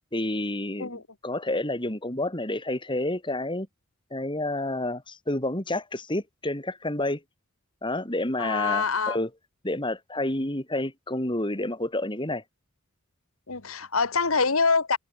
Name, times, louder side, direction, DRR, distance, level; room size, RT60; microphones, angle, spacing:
voice 1, 0.1-3.7 4.1-7.2 7.8-9.3 9.6-12.4, left 1 dB, 20° left, 4.0 m, -29 dB
voice 2, 8.4-9.2 13.5-15.0, left 4 dB, 75° left, 2.0 m, -25 dB
head